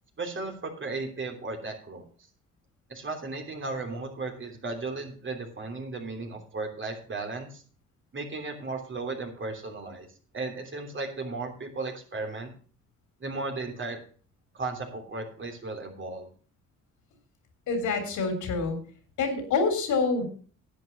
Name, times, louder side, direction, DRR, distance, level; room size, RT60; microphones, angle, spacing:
voice 1, 0.2-2.0 2.9-7.6 8.1-10.1 10.3-12.5 13.2-14.0 14.5-16.3, right 3 dB, 40° right, 3 dB, 3.3 m, -35 dB
voice 2, 17.7-18.8 19.2-20.2, left 4 dB, 80° left, 6 dB, 3.6 m, -26 dB
10.5 x 8.3 x 5.8 m, 0.41 s
cardioid pair, 90°, 30 cm